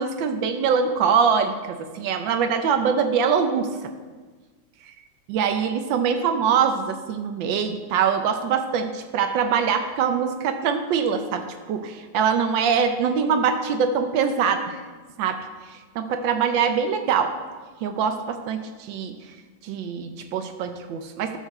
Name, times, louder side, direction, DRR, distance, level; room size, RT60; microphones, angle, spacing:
voice 1, 0.0-3.9 4.8-4.9 5.3-14.8 15.2-17.4 17.8-19.3 19.6-21.4, right 6 dB, 90° right, 7 dB, 1.5 m, -23 dB
13.5 x 4.8 x 6.6 m, 1.4 s
omnidirectional pair, 2.0 m